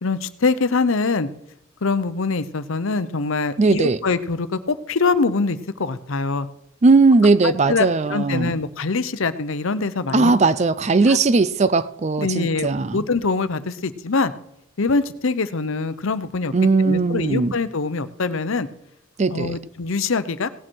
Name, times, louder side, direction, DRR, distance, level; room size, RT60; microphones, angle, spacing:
voice 1, 0.0-1.3 1.8-6.5 7.4-10.3 11.0-11.2 12.2-14.3 14.8-16.5 16.8-18.7 19.3-20.5, left 4 dB, 65° left, 0.7 m, -23 dB
voice 2, 3.6-4.0 6.8-8.5 10.1-13.0 16.5-17.5 19.2-19.6, right 3 dB, 30° right, 0.4 m, -18 dB
17.5 x 8.9 x 4.5 m
head